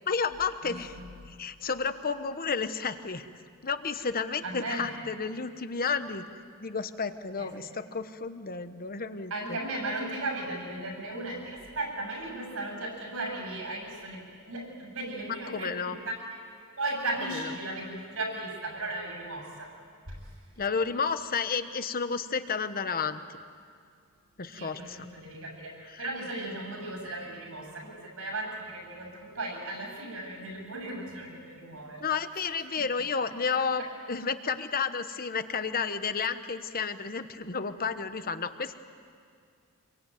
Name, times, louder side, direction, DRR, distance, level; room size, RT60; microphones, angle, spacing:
voice 1, 0.1-1.0 1.3-3.3 3.6-6.3 6.6-9.6 15.3-16.0 17.3-17.5 20.6-23.2 24.4-25.1 25.9-26.0 32.0-38.7, left 5 dB, 40° left, 10 dB, 1.1 m, -31 dB
voice 2, 0.6-1.0 4.4-4.9 7.4-7.5 9.3-16.4 16.8-19.7 20.1-20.2 24.5-32.1 32.3-32.4 32.8-32.9 33.5-33.9, right 2 dB, 70° right, 2 dB, 7.6 m, -36 dB
26.5 x 23.0 x 9.3 m, 2.3 s
head